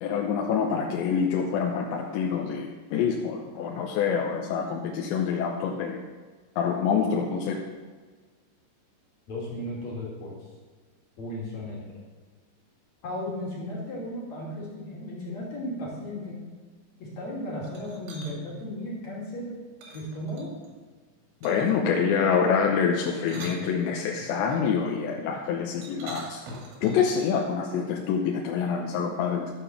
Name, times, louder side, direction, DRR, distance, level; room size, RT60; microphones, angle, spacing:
voice 1, 0.0-6.0 6.6-7.6 21.4-26.5 26.8-29.5, left 6 dB, 85° left, 1 dB, 3.1 m, -26 dB
voice 2, 9.3-10.3 11.2-11.9 13.0-16.4 17.0-19.5 19.9-20.5, left 1 dB, 45° left, -4 dB, 3.5 m, -35 dB
sound 1, 17.6-18.3 19.8-20.7 21.4-21.8 23.0-24.3 25.8-27.1, right 1 dB, 85° right, 4.4 m, -42 dB
12.0 x 7.4 x 7.1 m, 1.4 s
omnidirectional pair, 5.1 m